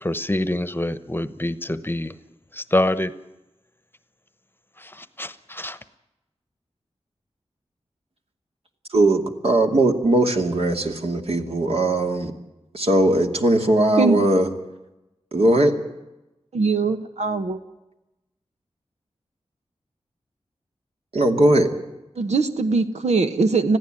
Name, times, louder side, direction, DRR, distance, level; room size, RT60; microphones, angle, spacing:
voice 1, 0.0-2.2 2.5-3.1 4.8-5.8, left 1 dB, 20° left, 15 dB, 1.0 m, -26 dB
voice 2, 8.9-12.3 12.7-14.5 15.3-15.7 21.1-21.7, right 1 dB, 65° right, 4 dB, 2.5 m, -19 dB
voice 3, 16.5-17.6 22.2-23.8, right 4 dB, 90° right, 8 dB, 1.1 m, -21 dB
21.0 x 15.0 x 9.0 m, 0.99 s
wide cardioid pair, 80°, 11 cm